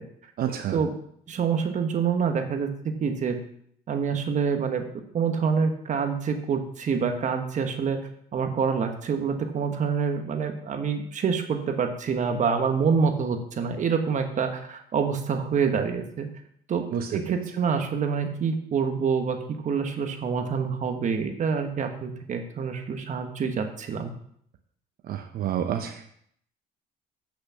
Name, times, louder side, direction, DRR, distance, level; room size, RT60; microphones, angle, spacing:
voice 1, 0.4-0.8 16.9-17.1 25.1-26.1, right 9 dB, 60° right, 5 dB, 0.8 m, -29 dB
voice 2, 1.3-3.4 3.9-4.8 5.1-8.0 8.3-16.3 16.7-19.4 19.6-24.1, right 6 dB, 45° right, 6 dB, 1.3 m, -26 dB
8.4 x 6.5 x 5.7 m, 0.67 s
cardioid pair, 110°, 17 cm